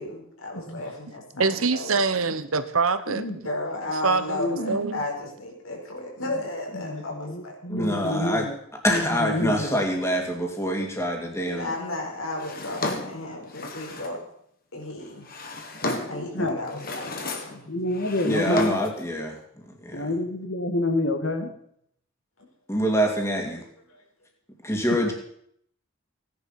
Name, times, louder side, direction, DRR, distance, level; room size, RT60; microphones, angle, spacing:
voice 1, 0.0-2.0 3.4-7.6 8.0-8.1 11.4-14.2 14.7-15.3 16.1-17.6, left 2 dB, 85° left, 4.7 m, -34 dB
voice 2, 1.4-3.4 4.0-5.0, right 4 dB, 85° right, 1.1 m, -25 dB
voice 3, 4.4-4.8 6.7-8.5 8.9-9.8 16.1-16.8 17.7-18.8 19.9-21.5 24.9-25.1, left 2 dB, 60° left, 1.9 m, -28 dB
voice 4, 7.7-8.4 8.8-11.7 16.4-16.5 18.2-20.1 22.7-23.6 24.6-25.1, equal, 15° left, 2.5 m, -26 dB
Drawer open or close, 12.4-14.2 15.0-16.3 16.7-17.6 17.9-19.0, left 2 dB, 45° left, 1.9 m, -33 dB
16.5 x 10.5 x 5.9 m
head